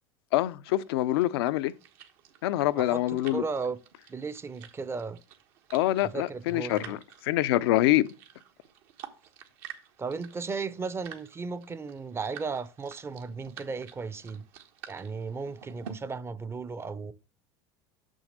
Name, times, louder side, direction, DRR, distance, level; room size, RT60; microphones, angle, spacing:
voice 1, 0.3-1.7 2.4-3.4 5.7-8.1, left 15 dB, 75° left, 0.5 m, -25 dB
sound 1, 0.7-15.9, right 9 dB, 70° right, 1.3 m, -50 dB
voice 2, 2.8-3.8 4.1-5.2 6.0-7.0 10.0-14.4 14.9-17.1, right 4 dB, 20° right, 0.6 m, -35 dB
6.3 x 6.2 x 6.5 m
hypercardioid pair, 100°, 13 cm